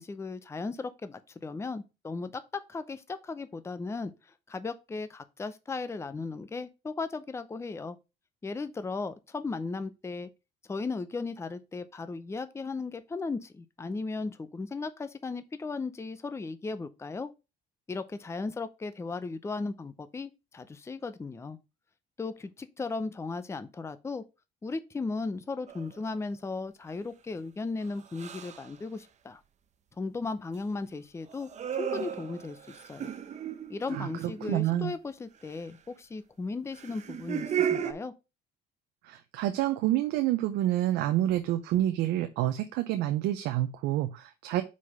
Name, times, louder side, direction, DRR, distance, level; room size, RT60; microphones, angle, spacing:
voice 1, 0.0-8.0 8.4-10.3 10.7-17.3 17.9-21.6 22.2-24.2 24.6-29.4 30.0-31.5 31.8-33.1 33.7-38.1, left 3 dB, 15° left, 0.6 m, -36 dB
sound 1, 25.7-26.0 28.1-28.7 31.3-34.9 36.7-37.9, right 9 dB, 45° right, 0.8 m, -34 dB
voice 2, 33.9-34.9 39.0-44.6, right 13 dB, 90° right, 0.6 m, -28 dB
4.9 x 4.1 x 5.5 m
cardioid pair, 110°, 17 cm